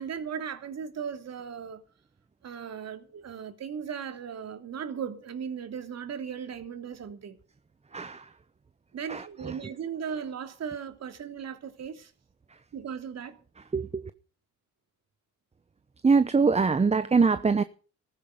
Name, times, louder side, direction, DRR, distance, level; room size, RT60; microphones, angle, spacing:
voice 1, 0.0-1.8 2.4-7.4 8.9-12.1 12.7-13.4, right 7 dB, 60° right, 3.0 m, -37 dB
voice 2, 7.9-8.3 9.1-9.5 13.7-14.0 16.0-17.6, right 4 dB, 20° right, 0.9 m, -23 dB
15.0 x 14.5 x 5.3 m
cardioid pair, 90°, 30 cm